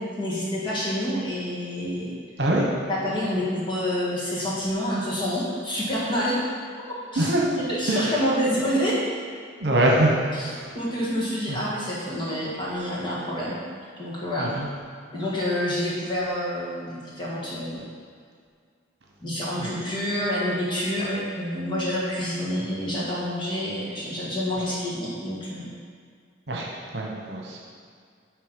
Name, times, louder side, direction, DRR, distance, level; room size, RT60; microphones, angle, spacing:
voice 1, 0.0-2.2 2.5-2.6 2.9-6.4 7.1-7.3 7.7-9.0 10.3-10.5 10.7-13.6 14.0-14.6 15.1-17.8 19.2-25.7, equal, 25° left, -7 dB, 1.6 m, -28 dB
voice 2, 7.2-7.6 7.9-8.1 9.6-10.6 11.5-11.6 14.4-14.7 19.6-19.7 21.0-21.1 24.6-24.7 26.5-27.6, right 1 dB, 60° right, -2 dB, 1.2 m, -24 dB
9.4 x 3.4 x 5.3 m, 2.1 s
head